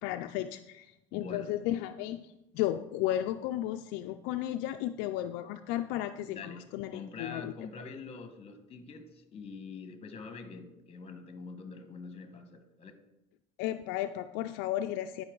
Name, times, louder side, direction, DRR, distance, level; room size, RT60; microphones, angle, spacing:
voice 1, 0.0-0.9 1.1-7.5 13.6-15.2, left 13 dB, 70° left, 7 dB, 0.4 m, -34 dB
voice 2, 1.1-1.5 6.2-12.9, left 4 dB, 30° left, 8 dB, 1.3 m, -45 dB
11.5 x 5.4 x 3.9 m, 0.92 s
supercardioid pair, 105°, 19 cm